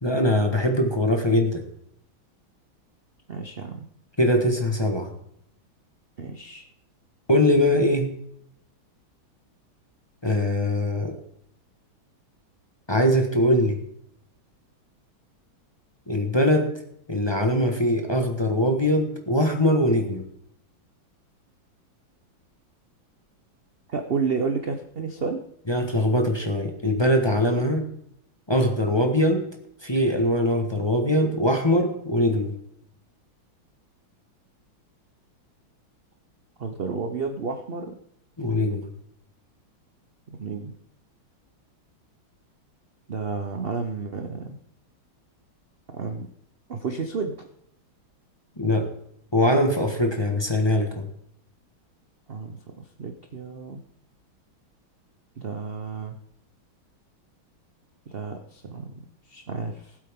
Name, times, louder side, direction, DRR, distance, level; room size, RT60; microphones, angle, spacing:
voice 1, 0.0-1.6 4.2-5.1 7.3-8.1 10.2-11.1 12.9-13.8 16.1-16.7 17.1-20.2 25.7-27.8 28.5-29.4 29.8-32.5 38.4-38.9 48.6-48.9 49.3-51.0, left 1 dB, 15° left, 3 dB, 1.2 m, -22 dB
voice 2, 3.3-3.9 6.2-6.7 23.9-25.4 36.6-38.0 40.3-40.8 43.1-44.6 45.9-46.3 46.7-47.3 52.3-53.8 55.4-56.2 58.1-60.0, right 4 dB, 55° right, 5 dB, 0.6 m, -31 dB
19.5 x 8.2 x 3.7 m, 0.70 s
omnidirectional pair, 2.2 m